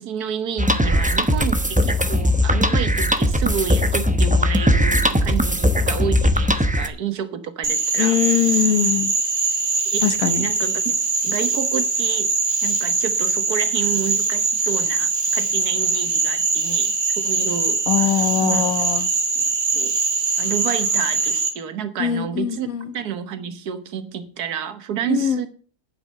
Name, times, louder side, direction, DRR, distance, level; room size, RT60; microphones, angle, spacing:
voice 1, 0.0-8.2 9.9-10.9 11.2-12.3 12.6-18.6 19.7-20.0 20.4-22.7 22.9-25.5, right 8 dB, 85° right, 1.6 m, -30 dB
sound 1, 0.6-6.9, equal, 5° right, 0.7 m, -19 dB
Frog, 7.6-21.5, right 3 dB, 40° right, 1.7 m, -22 dB
voice 2, 8.0-9.1 10.0-10.4 17.9-19.1 22.0-22.9 25.1-25.4, left 9 dB, 65° left, 1.5 m, -21 dB
9.4 x 7.9 x 6.7 m
omnidirectional pair, 1.6 m